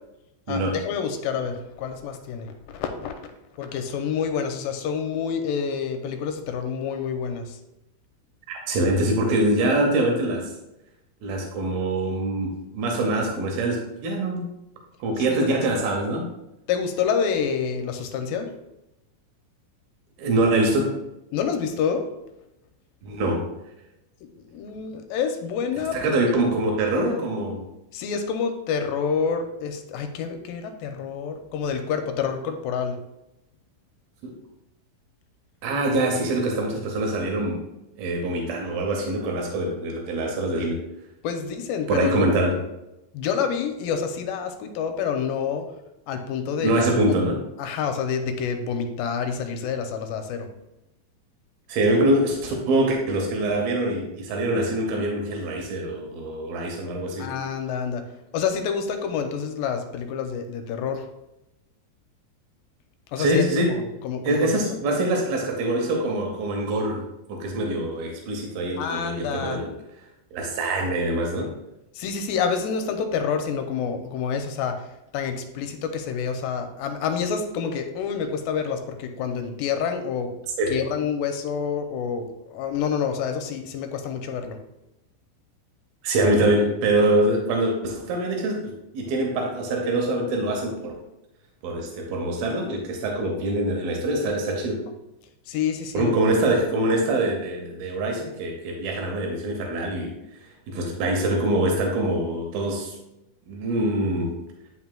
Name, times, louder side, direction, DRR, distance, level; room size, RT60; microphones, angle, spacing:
voice 1, 0.5-3.1 3.6-7.6 15.3-15.5 16.7-18.5 21.3-22.1 24.2-26.3 27.9-33.0 41.2-42.3 43.1-45.7 46.1-47.1 47.6-50.5 57.2-58.1 58.3-61.1 63.1-64.6 68.8-69.6 72.0-74.9 75.1-80.3 80.7-84.6 95.5-96.1, left 6 dB, 85° left, 6 dB, 2.3 m, -28 dB
voice 2, 8.5-10.5 11.2-14.5 15.0-16.3 20.2-21.0 23.0-23.5 25.9-27.7 34.2-34.3 35.6-37.6 38.0-40.8 41.9-42.6 46.6-47.4 51.7-57.3 63.2-63.8 64.2-69.7 70.3-71.5 80.6-80.8 86.0-90.9 91.6-94.8 95.9-100.1 100.7-103.0 103.5-104.4, right 1 dB, 85° right, 1 dB, 2.8 m, -24 dB
9.4 x 5.7 x 2.2 m, 0.91 s
omnidirectional pair, 4.2 m